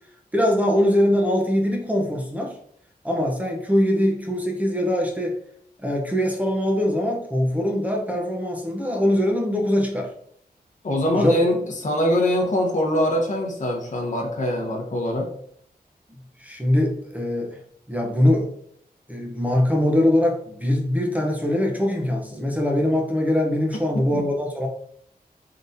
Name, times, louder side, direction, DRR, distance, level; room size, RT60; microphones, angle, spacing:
voice 1, 0.3-2.5 3.0-5.4 5.8-10.1 11.2-11.3 16.4-17.5 17.9-18.5 19.1-24.7, left 1 dB, 10° right, 0 dB, 0.7 m, -22 dB
voice 2, 10.8-15.3 24.1-24.2, left 1 dB, 50° left, -1 dB, 0.9 m, -23 dB
3.9 x 3.5 x 2.7 m, 0.66 s
wide cardioid pair, 90°, 16 cm